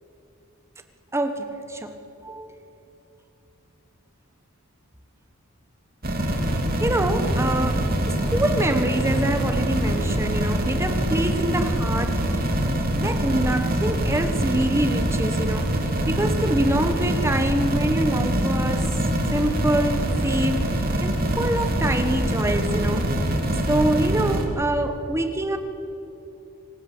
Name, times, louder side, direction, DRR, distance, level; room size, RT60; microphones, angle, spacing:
voice 1, 1.1-2.6 6.8-12.5 12.9-19.0 19.3-23.4 23.7-25.6, right 1 dB, 10° right, 7 dB, 1.4 m, -26 dB
sound 1, 6.0-24.4, right 1 dB, 40° right, 3.4 m, -24 dB
26.5 x 25.5 x 8.0 m, 3.0 s
head